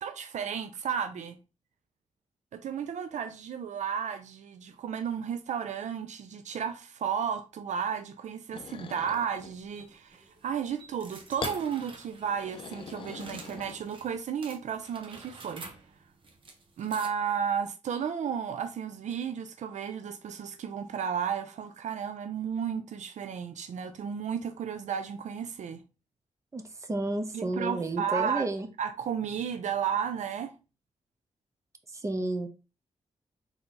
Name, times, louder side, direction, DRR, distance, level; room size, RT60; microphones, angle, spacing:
voice 1, 0.0-1.4 2.5-15.6 16.8-25.8 27.3-28.5 28.8-30.5, right 7 dB, 75° right, 0.4 m, -33 dB
sound 1, 8.5-9.6 11.4-11.6 12.2-14.1, left 5 dB, 45° left, 0.4 m, -41 dB
sound 2, 9.3-14.1 14.4-17.5, right 3 dB, 45° right, 0.9 m, -48 dB
voice 2, 26.5-28.7 31.9-32.5, right 2 dB, 25° right, 0.7 m, -31 dB
3.9 x 2.9 x 3.7 m
wide cardioid pair, 135°, 12 cm